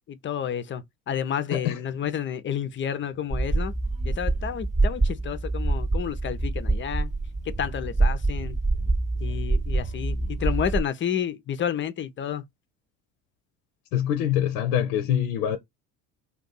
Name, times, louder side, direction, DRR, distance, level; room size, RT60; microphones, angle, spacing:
voice 1, 0.1-3.7 4.0-7.1 7.4-8.6 9.2-12.4, left 9 dB, 30° left, 0.5 m, -30 dB
voice 2, 1.5-1.8 13.9-15.6, left 10 dB, 70° left, 0.6 m, -24 dB
sound 1, 3.3-10.8, right 2 dB, 20° right, 0.7 m, -26 dB
2.6 x 2.3 x 3.7 m
hypercardioid pair, 65°, 39 cm